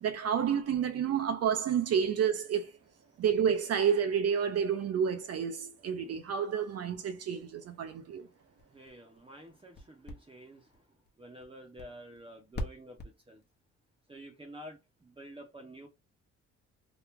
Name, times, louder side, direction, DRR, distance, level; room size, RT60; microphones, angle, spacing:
voice 1, 0.0-2.8 3.2-8.3, right 7 dB, 55° right, 0.6 m, -30 dB
sound 1, 8.4-13.5, left 1 dB, 35° left, 0.9 m, -45 dB
voice 2, 8.7-10.8 11.2-13.0 13.3-13.4 14.1-15.9, right 1 dB, 15° right, 0.8 m, -49 dB
3.0 x 2.4 x 3.4 m
cardioid pair, 90°, 30 cm